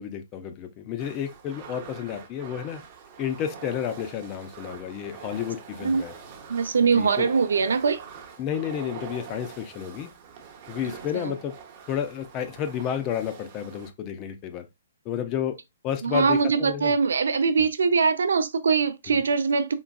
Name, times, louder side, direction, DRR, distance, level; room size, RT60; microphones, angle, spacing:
voice 1, 0.0-2.8 3.2-6.1 6.9-7.3 8.4-10.1 10.7-11.6 11.9-14.7 15.1-15.6 15.8-16.9 17.6-17.7 19.1-19.2, left 9 dB, 25° left, 0.4 m, -31 dB
sound 1, 1.0-13.9, right 6 dB, 30° right, 0.7 m, -44 dB
voice 2, 6.5-8.0 11.1-11.3 16.0-19.7, right 5 dB, 80° right, 0.5 m, -22 dB
3.8 x 2.3 x 2.3 m
hypercardioid pair, 160°, 0 cm